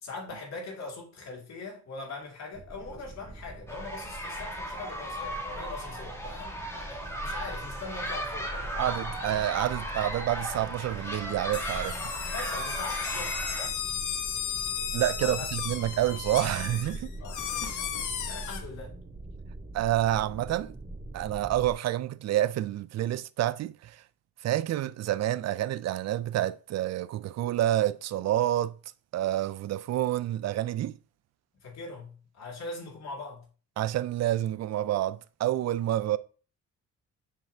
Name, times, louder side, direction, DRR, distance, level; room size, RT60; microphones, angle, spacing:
voice 1, 0.0-8.9 12.3-13.4 15.2-15.5 17.2-17.9 18.3-19.0 31.6-33.4, left 3 dB, 60° left, 2.7 m, -41 dB
sound 1, 2.5-21.7, right 2 dB, 25° right, 1.0 m, -42 dB
sound 2, 3.7-13.7, equal, 10° left, 1.7 m, -36 dB
voice 2, 8.8-12.0 14.9-17.1 17.6-17.8 19.7-20.7 21.1-24.0 24.4-28.7 29.1-31.0 33.8-36.2, right 13 dB, 60° right, 0.5 m, -28 dB
sound 3, 11.5-18.6, left 8 dB, 80° left, 1.0 m, -35 dB
7.1 x 6.0 x 2.8 m
cardioid pair, 90°, 30 cm